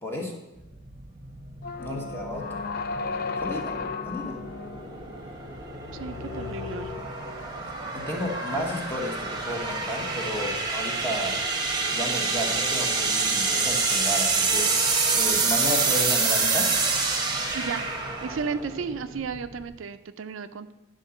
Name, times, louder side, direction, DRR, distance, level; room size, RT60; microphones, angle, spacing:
voice 1, 0.0-0.4 1.8-2.6 3.4-3.7 4.0-4.4 7.9-11.4 11.9-14.7 15.1-16.7, left 1 dB, 10° left, 0 dB, 1.3 m, -32 dB
sound 1, 0.6-19.7, right 4 dB, 20° right, 1.2 m, -27 dB
sound 2, 1.6-7.6, left 4 dB, 45° left, 0.4 m, -35 dB
voice 2, 1.8-2.2 6.0-6.9 17.5-17.9 18.2-20.7, right 5 dB, 70° right, 11 dB, 0.4 m, -34 dB
10.0 x 3.8 x 7.0 m, 0.99 s
head